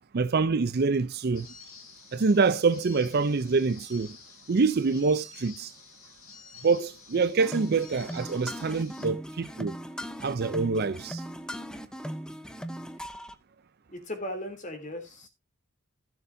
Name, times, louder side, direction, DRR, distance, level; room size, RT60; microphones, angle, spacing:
voice 1, 0.1-1.5 2.1-4.1 4.5-5.7 6.6-9.7 10.2-11.2, right 4 dB, 45° right, 0.5 m, -25 dB
sound 1, 1.3-9.1, left 5 dB, 65° left, 3.5 m, -50 dB
sound 2, 7.4-13.4, equal, 5° left, 0.7 m, -38 dB
voice 2, 13.9-15.3, left 1 dB, 35° left, 3.1 m, -37 dB
16.5 x 6.8 x 2.6 m
head